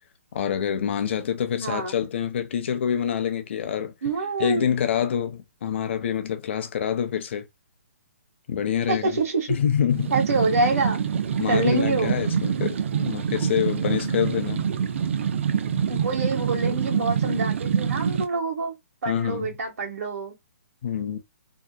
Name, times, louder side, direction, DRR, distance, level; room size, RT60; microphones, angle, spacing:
voice 1, 0.3-3.9 4.4-7.4 8.5-9.2 9.5-10.1 11.4-14.7 19.1-19.6 20.8-21.2, left 8 dB, 50° left, 0.5 m, -26 dB
voice 2, 1.6-1.9 4.0-4.7 8.9-9.6 10.1-11.0 11.5-12.2 15.9-18.8 19.0-20.3, right 3 dB, 70° right, 1.2 m, -26 dB
sound 1, 9.9-18.2, right 7 dB, 55° right, 0.4 m, -26 dB
2.8 x 2.1 x 2.2 m
hypercardioid pair, 155°, 8 cm